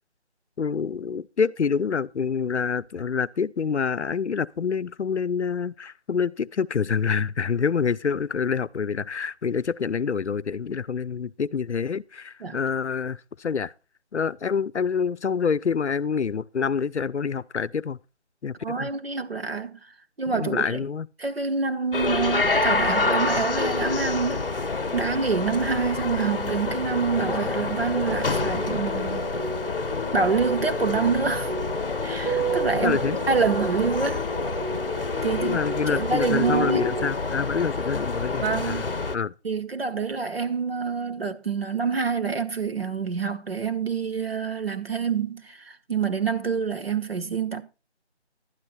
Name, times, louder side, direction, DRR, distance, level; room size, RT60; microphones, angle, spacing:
voice 1, 0.6-13.7 14.1-18.0 18.4-18.5 18.8-18.9 20.3-21.1 32.8-33.2 35.4-39.3, left 6 dB, 75° left, 0.6 m, -27 dB
voice 2, 18.6-19.8 20.2-20.8 21.2-24.5 24.9-29.3 30.1-31.5 32.0-33.0 33.3-34.2 35.2-35.6 35.9-36.9 38.4-38.9 39.4-47.6, right 5 dB, 60° right, 1.3 m, -27 dB
sound 1, 21.9-39.2, left 3 dB, 50° left, 0.9 m, -28 dB
sound 2, 28.1-37.1, right 2 dB, 40° right, 5.0 m, -32 dB
12.0 x 9.7 x 4.2 m
figure-of-eight pair, 175°, 34 cm